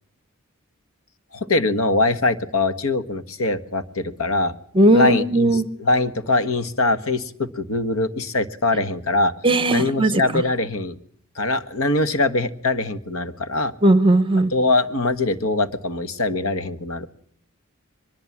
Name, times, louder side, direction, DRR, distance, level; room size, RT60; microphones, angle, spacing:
voice 1, 1.3-4.5 4.9-9.3 9.7-11.0 11.3-13.7 14.5-17.1, left 2 dB, 75° left, 11 dB, 1.5 m, -22 dB
voice 2, 4.7-5.6 9.4-10.4 13.8-14.5, right 1 dB, 25° right, 13 dB, 1.2 m, -17 dB
23.0 x 21.0 x 7.4 m, 0.62 s
head